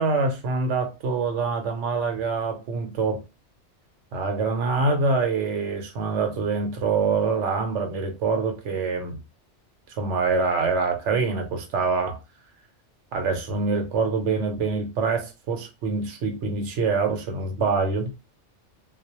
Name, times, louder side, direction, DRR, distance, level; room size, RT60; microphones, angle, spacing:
voice 1, 0.0-3.2 4.1-9.2 10.0-12.2 13.1-18.1, right 4 dB, 80° right, 1.0 m, -25 dB
2.3 x 2.0 x 2.8 m
omnidirectional pair, 1.2 m